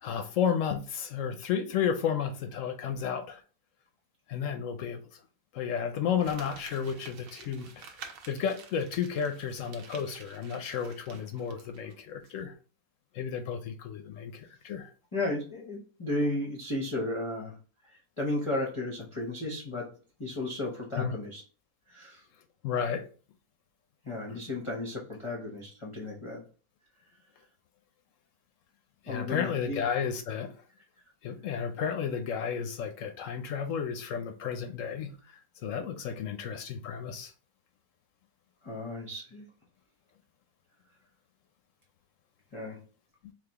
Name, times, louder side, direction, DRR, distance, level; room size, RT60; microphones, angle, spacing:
voice 1, 0.0-3.4 4.3-5.0 5.5-7.9 8.3-12.5 13.1-14.9 21.0-21.1 22.6-23.0 24.3-24.4 29.0-30.5 31.2-35.2 35.6-37.3, left 7 dB, 70° left, 0.8 m, -32 dB
Crumpling crinkling, 6.2-11.9 12.2-12.3, right 6 dB, 70° right, 1.1 m, -50 dB
voice 2, 15.1-17.6 17.9-19.9 20.2-21.4 21.9-22.3 24.0-26.4 29.1-29.8 38.6-39.4 42.5-42.8, left 2 dB, 30° left, 0.6 m, -34 dB
4.0 x 2.9 x 2.9 m
omnidirectional pair, 1.6 m